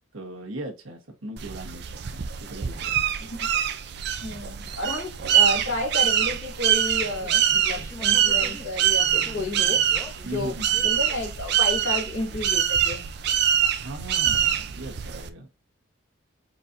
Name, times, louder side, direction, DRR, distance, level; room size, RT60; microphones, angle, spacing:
voice 1, 0.1-1.8 2.1-3.0 10.2-10.8 13.7-15.5, right 2 dB, 80° right, 2 dB, 1.2 m, -38 dB
sound 1, 1.4-15.3, right 9 dB, 55° right, 0.4 m, -24 dB
voice 2, 4.2-9.8 10.2-10.5 10.8-13.1, left 2 dB, 80° left, -2 dB, 2.5 m, -31 dB
sound 2, 6.2-8.7 9.0-11.2, left 1 dB, 15° left, 0.3 m, -44 dB
4.0 x 4.0 x 2.6 m, 0.26 s
head